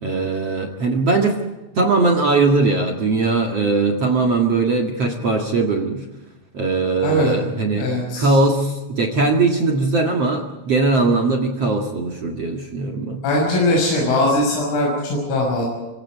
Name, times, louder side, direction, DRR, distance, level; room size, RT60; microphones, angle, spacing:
voice 1, 0.0-1.4 1.7-6.0 6.5-13.2, right 3 dB, 55° right, 1 dB, 1.7 m, -20 dB
voice 2, 7.0-7.4 7.8-8.4 13.2-15.6, left 1 dB, 75° left, -2 dB, 8.7 m, -20 dB
26.0 x 24.5 x 4.8 m, 1.1 s
omnidirectional pair, 5.9 m